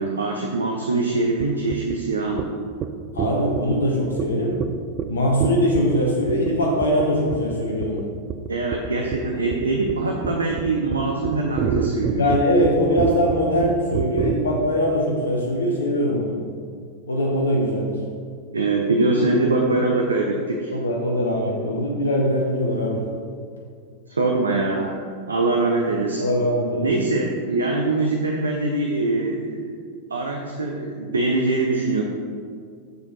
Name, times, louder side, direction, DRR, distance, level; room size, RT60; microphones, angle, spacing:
voice 1, 0.0-2.5 8.5-12.2 18.5-20.7 24.1-26.3 26.8-29.7 30.1-32.0, right 2 dB, 75° right, 1 dB, 0.7 m, -23 dB
sound 1, 1.4-1.5 1.7-2.0 2.4-2.5 2.8-2.9 3.2-3.8 4.2-4.3 4.6-4.7 5.0-5.1 5.4-6.0 6.3-6.5 6.8-7.1 7.3-7.6 7.8-8.0 8.3-14.4, right 9 dB, 35° right, 0.4 m, -27 dB
voice 2, 3.1-4.7 5.1-8.0 12.2-16.3 17.1-18.0 20.7-23.0 26.2-26.9, equal, 70° left, -1 dB, 0.9 m, -21 dB
6.8 x 6.8 x 3.9 m, 2.1 s
figure-of-eight pair, 90°, 0 cm